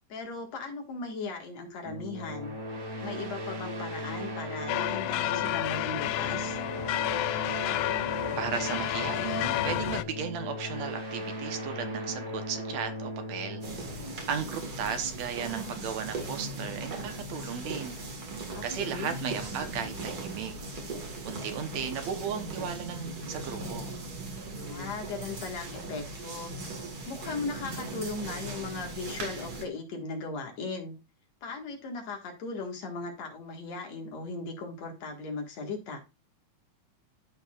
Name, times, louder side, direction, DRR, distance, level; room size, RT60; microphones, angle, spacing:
voice 1, 0.1-2.5 3.0-6.6 18.5-19.1 24.6-26.5 27.1-31.0 31.4-36.0, left 3 dB, 65° left, 2.9 m, -37 dB
sound 1, 1.8-15.2, equal, 55° right, 3.4 m, -38 dB
sound 2, 4.7-10.0, left 14 dB, 80° left, 1.5 m, -30 dB
voice 2, 8.4-18.0 18.6-20.5 21.3-24.0, right 7 dB, 70° right, 2.2 m, -35 dB
sound 3, 13.6-29.7, right 2 dB, 40° right, 1.8 m, -38 dB
14.0 x 5.3 x 2.4 m
omnidirectional pair, 3.4 m